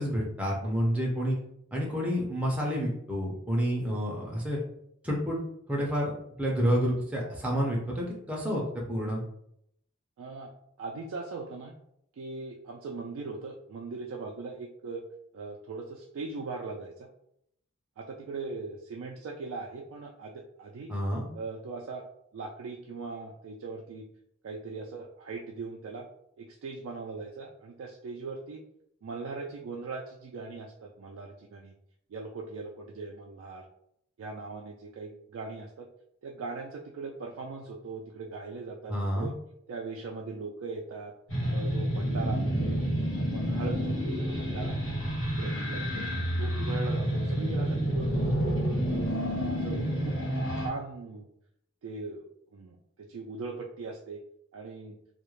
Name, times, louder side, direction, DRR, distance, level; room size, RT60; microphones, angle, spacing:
voice 1, 0.0-1.4 1.7-4.6 5.0-5.4 5.7-6.1 6.4-9.2 20.9-21.3 38.9-39.3, equal, 5° right, -3 dB, 0.5 m, -29 dB
voice 2, 10.2-10.5 10.8-11.7 12.2-15.0 15.3-17.1 18.0-20.3 20.6-20.9 21.3-22.0 22.3-24.0 24.4-26.1 26.4-28.6 29.0-31.7 32.1-33.7 34.2-35.9 36.2-39.3 39.7-41.1 41.5-42.8 43.1-44.8 45.3-46.0 46.4-49.1 49.5-50.1 50.6-51.3 51.8-52.2 52.5-52.8 53.1-54.2 54.5-55.0, right 3 dB, 75° right, -1 dB, 0.3 m, -40 dB
sound 1, 41.3-50.7, equal, 80° left, 1.0 m, -29 dB
2.3 x 2.0 x 3.0 m, 0.74 s
head